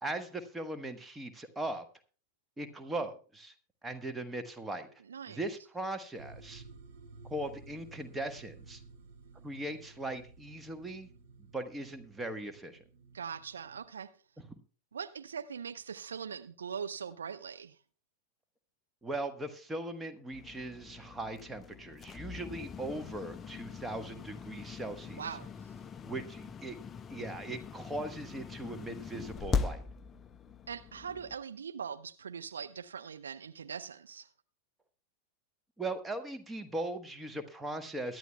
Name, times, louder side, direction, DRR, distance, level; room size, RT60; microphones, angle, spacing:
voice 1, 0.0-1.8 2.6-3.5 3.8-4.9 5.3-6.6 7.2-8.8 9.4-11.1 11.4-12.8 14.5-14.6 19.0-25.2 26.0-26.8 27.1-29.8 35.8-38.2, right 2 dB, 10° right, 1.2 m, -39 dB
voice 2, 5.1-5.4 13.1-14.1 14.9-17.8 25.1-25.7 30.7-34.3, right 7 dB, 70° right, 0.4 m, -41 dB
sound 1, 6.1-13.8, right 3 dB, 50° right, 1.9 m, -54 dB
sound 2, 20.3-31.4, left 5 dB, 20° left, 0.4 m, -41 dB
22.0 x 11.0 x 2.2 m
figure-of-eight pair, 90°, 0 cm